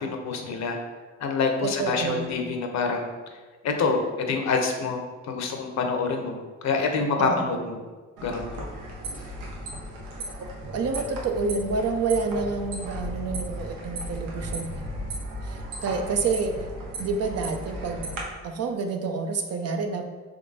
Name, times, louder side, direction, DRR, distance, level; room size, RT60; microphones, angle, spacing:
voice 1, 0.0-0.8 1.2-3.1 3.6-6.4 6.6-7.8 8.2-8.7, left 4 dB, 65° left, 4 dB, 0.8 m, -26 dB
voice 2, 1.6-2.4 7.2-7.6 10.7-14.7 15.4-16.5 17.0-18.1 18.4-20.0, right 4 dB, 55° right, 5 dB, 0.6 m, -28 dB
sound 1, 8.2-18.2, right 1 dB, 90° right, 1.0 m, -35 dB
3.7 x 3.3 x 3.9 m, 1.4 s
cardioid pair, 90°, 30 cm